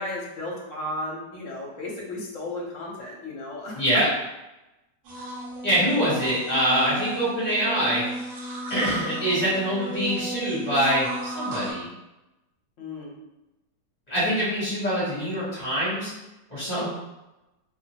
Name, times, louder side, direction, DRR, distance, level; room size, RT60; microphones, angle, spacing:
voice 1, 0.0-3.8 12.8-13.1 16.7-16.9, left 1 dB, 55° left, -3 dB, 0.9 m, -34 dB
voice 2, 3.7-4.1 5.6-8.0 8.7-11.9 14.1-16.1 16.5-16.9, equal, 30° left, -10 dB, 0.8 m, -24 dB
sound 1, 5.0-11.7, right 1 dB, 60° right, 0.8 m, -34 dB
2.7 x 2.6 x 2.9 m, 0.99 s
omnidirectional pair, 2.0 m